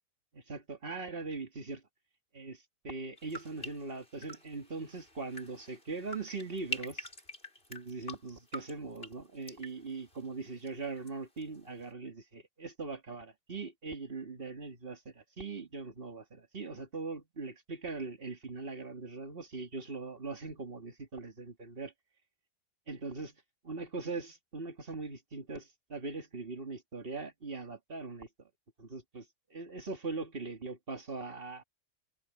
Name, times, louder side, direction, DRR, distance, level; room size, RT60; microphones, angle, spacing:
voice 1, 0.3-1.8 2.3-7.1 7.7-21.9 22.9-23.4 23.6-28.3 28.8-29.3 29.5-31.6, right 3 dB, 35° right, 2.3 m, -41 dB
sound 1, 3.2-11.1 11.4-11.9, left 1 dB, 35° left, 6.9 m, -46 dB
omnidirectional pair, 1.7 m